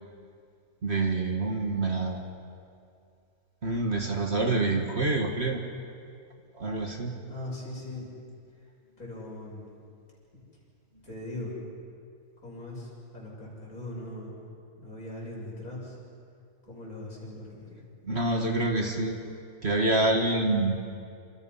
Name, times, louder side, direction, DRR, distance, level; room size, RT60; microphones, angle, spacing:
voice 1, 0.8-2.2 3.6-5.6 6.5-7.1 18.0-19.2 19.6-20.8, right 2 dB, 40° right, 3 dB, 1.9 m, -27 dB
voice 2, 7.3-8.1 9.0-9.7 11.0-11.6 12.4-14.4 14.8-16.0 16.7-17.8, left 1 dB, 55° left, -3 dB, 7.0 m, -40 dB
28.0 x 26.5 x 5.7 m, 2.4 s
omnidirectional pair, 1.8 m